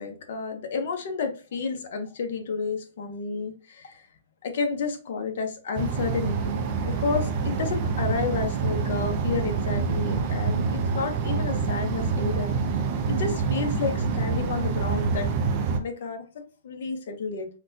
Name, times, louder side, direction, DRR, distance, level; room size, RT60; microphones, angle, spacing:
voice 1, 0.0-4.0 4.4-12.5 13.1-15.3 15.8-17.5, left 4 dB, 50° left, 5 dB, 0.7 m, -31 dB
sound 1, 5.8-15.8, right 5 dB, 25° right, 0.4 m, -26 dB
3.9 x 2.2 x 2.6 m, 0.35 s
hypercardioid pair, 170°, 0 cm